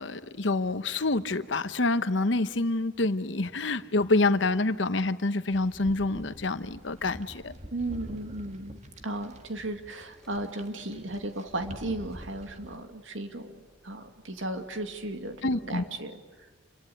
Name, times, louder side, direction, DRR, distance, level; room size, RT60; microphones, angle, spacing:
voice 1, 0.0-7.5 15.4-15.8, left 2 dB, 75° left, 12 dB, 1.0 m, -27 dB
sound 1, 5.5-12.8, right 1 dB, 35° right, 1.7 m, -47 dB
voice 2, 7.7-8.8 9.0-13.6 13.8-16.1, right 1 dB, 85° right, 6 dB, 2.4 m, -35 dB
sound 2, 10.2-10.3 11.4-15.8, equal, 5° left, 1.4 m, -53 dB
28.5 x 23.5 x 8.0 m, 1.3 s
head